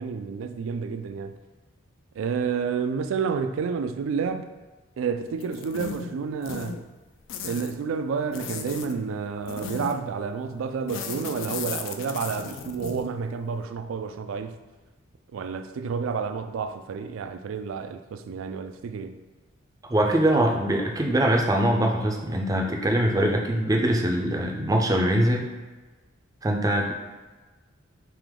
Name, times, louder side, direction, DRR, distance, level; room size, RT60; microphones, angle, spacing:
voice 1, 0.0-1.4 2.2-4.5 5.0-6.9 7.4-14.6 15.3-19.2, right 5 dB, 85° right, 8 dB, 0.3 m, -30 dB
sound 1, 5.4-6.1 6.4-6.8 7.3-7.7 8.3-8.9 9.4-10.1 10.9-13.1, left 6 dB, 70° left, 0.3 m, -35 dB
voice 2, 19.9-25.5 26.4-26.9, right 1 dB, 20° right, 1 dB, 0.4 m, -23 dB
3.4 x 2.9 x 3.6 m, 1.2 s
head